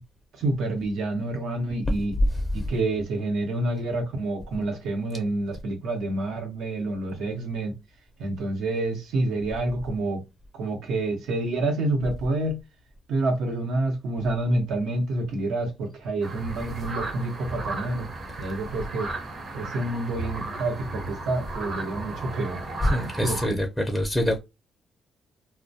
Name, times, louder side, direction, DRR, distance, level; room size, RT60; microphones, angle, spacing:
voice 1, 0.3-2.2 2.5-7.7 8.2-10.2 10.5-12.6 13.1-18.1 18.4-19.1 19.5-22.6 23.2-23.6, right 2 dB, 80° right, 0.9 m, -28 dB
sound 1, 16.2-23.5, right 2 dB, 50° right, 0.9 m, -35 dB
voice 2, 22.8-24.4, equal, 10° left, 0.5 m, -25 dB
2.2 x 2.1 x 2.7 m
cardioid pair, 90°, 0 cm